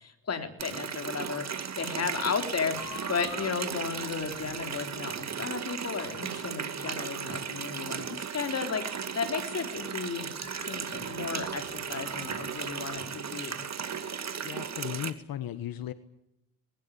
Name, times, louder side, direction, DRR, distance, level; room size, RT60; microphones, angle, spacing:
voice 1, 0.0-10.3 10.7-13.7, left 5 dB, 45° left, 7 dB, 4.0 m, -34 dB
Water tap faucet, 0.6-15.1, right 7 dB, 50° right, 2.3 m, -36 dB
sound 1, 2.8-4.7 10.4-13.1, left 7 dB, 65° left, 3.0 m, -47 dB
voice 2, 14.4-15.9, left 11 dB, 85° left, 12 dB, 1.5 m, -36 dB
21.0 x 19.5 x 8.6 m, 0.79 s
cardioid pair, 105°, 34 cm